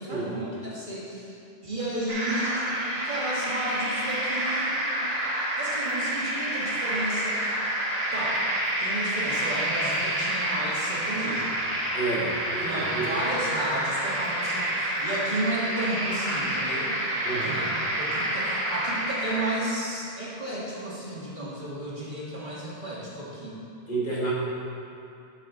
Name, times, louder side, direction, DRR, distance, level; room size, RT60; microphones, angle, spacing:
voice 1, 0.0-1.4 1.6-2.7 3.0-4.9 5.5-7.6 8.1-8.4 8.8-11.6 12.6-17.0 17.3-23.6, right 1 dB, 50° right, -7 dB, 2.0 m, -33 dB
sound 1, 2.1-19.5, right 1 dB, 75° right, 2.2 m, -28 dB
voice 2, 11.9-13.2 17.2-17.6 23.9-24.3, right 3 dB, 55° left, -7 dB, 2.1 m, -30 dB
10.5 x 7.9 x 3.8 m, 2.7 s
omnidirectional pair, 1.0 m